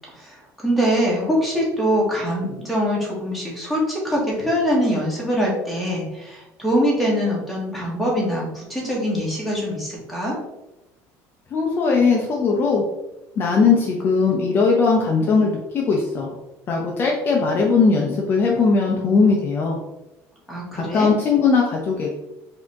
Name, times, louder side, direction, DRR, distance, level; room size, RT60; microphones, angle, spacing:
voice 1, 0.6-10.3 20.5-21.1, equal, ahead, -5 dB, 1.3 m, -23 dB
voice 2, 11.5-12.8 13.4-16.3 16.7-19.8 20.7-22.1, left 4 dB, 35° left, -1 dB, 0.6 m, -19 dB
4.7 x 2.8 x 3.5 m, 0.96 s
cardioid pair, 160°, 7 cm